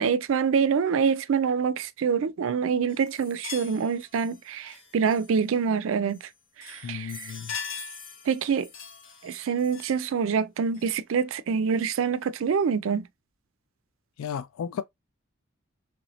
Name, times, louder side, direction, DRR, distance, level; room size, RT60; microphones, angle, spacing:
voice 1, 0.0-6.2 6.6-7.3 8.3-8.7 9.2-13.1, right 6 dB, 75° right, 0.4 m, -26 dB
sound 1, 2.9-5.6 6.1-6.3 6.6-10.1 10.7-10.9 11.8-11.9, left 6 dB, 65° left, 0.9 m, -42 dB
voice 2, 6.8-7.5 14.2-14.8, left 7 dB, 85° left, 0.3 m, -34 dB
3.1 x 2.7 x 3.0 m
head